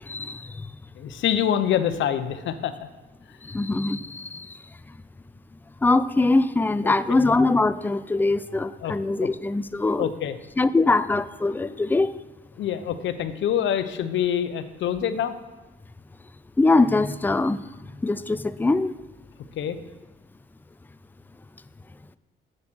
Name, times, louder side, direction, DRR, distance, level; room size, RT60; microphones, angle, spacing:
voice 1, 0.1-0.7 3.4-4.5 5.8-10.1 10.6-12.1 16.6-17.6 18.0-18.9, left 3 dB, 10° left, 14 dB, 0.4 m, -22 dB
voice 2, 1.0-2.7 6.8-6.9 8.8-8.9 9.2-9.3 10.0-10.4 12.6-15.3 19.6-19.8, left 9 dB, 70° left, 11 dB, 0.8 m, -25 dB
7.8 x 7.3 x 6.1 m, 1.1 s
cardioid pair, 90°, 20 cm